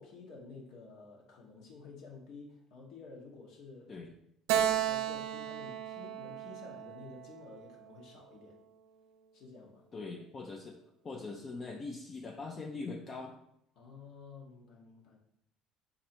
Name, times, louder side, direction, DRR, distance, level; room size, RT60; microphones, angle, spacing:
voice 1, 0.0-3.9 4.5-8.6 9.3-9.8 13.7-15.2, left 4 dB, 70° left, -1 dB, 1.1 m, -51 dB
Keyboard (musical), 4.5-7.9, right 10 dB, 85° right, 0.3 m, -34 dB
voice 2, 9.9-10.8 11.0-13.4, left 3 dB, 35° left, 0 dB, 0.5 m, -42 dB
4.1 x 2.6 x 4.3 m, 0.77 s
supercardioid pair, 90°, 0 cm